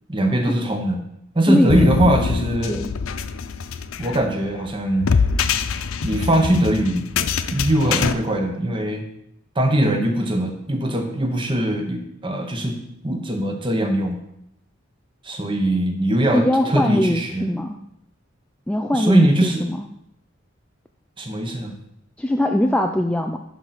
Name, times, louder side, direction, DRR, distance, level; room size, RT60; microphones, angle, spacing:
voice 1, 0.1-1.0 1.3-2.8 4.0-5.2 6.0-7.0 7.5-9.0 9.5-12.8 13.0-14.2 15.2-17.5 18.9-19.6 21.2-21.7, right 1 dB, 25° right, 3 dB, 1.2 m, -21 dB
voice 2, 1.5-1.8 2.7-2.9 16.3-17.8 18.7-19.8 22.2-23.4, left 1 dB, 5° left, 4 dB, 0.3 m, -21 dB
sound 1, 1.7-8.1, left 5 dB, 90° left, 0.5 m, -24 dB
11.0 x 4.1 x 6.0 m, 0.79 s
head